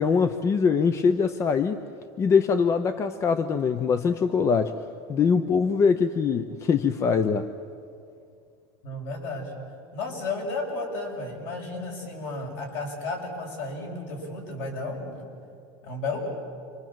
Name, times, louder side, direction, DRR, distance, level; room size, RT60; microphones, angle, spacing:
voice 1, 0.0-1.8 2.2-4.7 5.1-7.5, left 5 dB, 25° left, 10 dB, 0.8 m, -23 dB
voice 2, 8.8-9.5 9.9-15.2 15.8-16.3, left 2 dB, 65° left, 0 dB, 7.7 m, -33 dB
29.0 x 24.5 x 7.7 m, 2.4 s
supercardioid pair, 150°, 11 cm